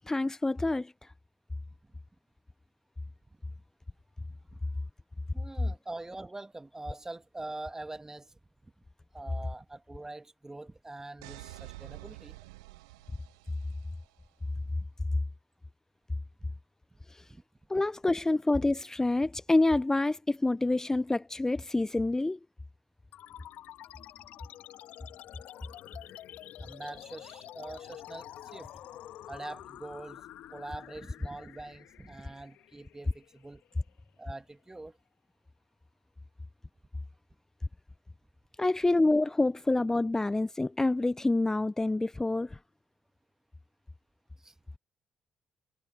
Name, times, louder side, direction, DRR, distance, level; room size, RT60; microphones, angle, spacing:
voice 1, 0.1-1.1 17.1-17.3 17.7-22.4 38.6-42.6, left 2 dB, 20° left, 0.8 m, -27 dB
voice 2, 5.3-8.4 8.6-8.7 9.1-12.3 26.6-28.7 29.3-30.2 30.5-33.6 34.2-34.9 44.4-44.5, right 2 dB, 20° right, 2.1 m, -44 dB
sound 1, 11.2-14.1, right 21 dB, 80° right, 0.6 m, -48 dB
sound 2, 23.1-34.1, left 13 dB, 65° left, 2.1 m, -48 dB
hypercardioid pair, 40°, 3 cm